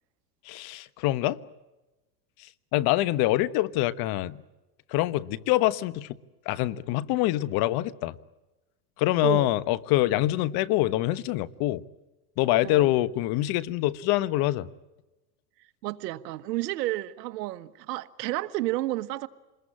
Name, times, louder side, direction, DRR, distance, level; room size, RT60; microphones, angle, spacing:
voice 1, 0.5-1.4 2.7-4.4 4.9-6.2 6.5-8.2 9.0-11.8 12.4-14.7, left 16 dB, 50° left, 1.2 m, -25 dB
voice 2, 9.2-9.5 12.6-12.9 15.8-19.3, right 17 dB, 75° right, 1.4 m, -31 dB
27.5 x 21.5 x 8.7 m
supercardioid pair, 125°, 49 cm